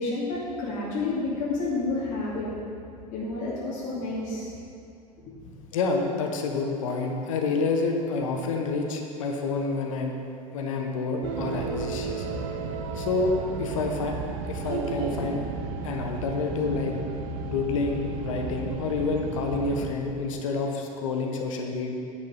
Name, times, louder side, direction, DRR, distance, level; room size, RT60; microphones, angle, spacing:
voice 1, 0.0-2.5 3.1-4.5 5.4-5.5, left 3 dB, 45° left, -7 dB, 2.4 m, -30 dB
voice 2, 5.7-10.1 10.5-12.3 12.9-14.1 14.4-15.4 15.8-17.0 17.5-21.9, left 4 dB, 65° left, 2 dB, 1.3 m, -28 dB
sound 1, 11.2-20.0, right 5 dB, 55° right, 1.0 m, -33 dB
10.0 x 5.7 x 7.0 m, 2.5 s
figure-of-eight pair, 80°, 18 cm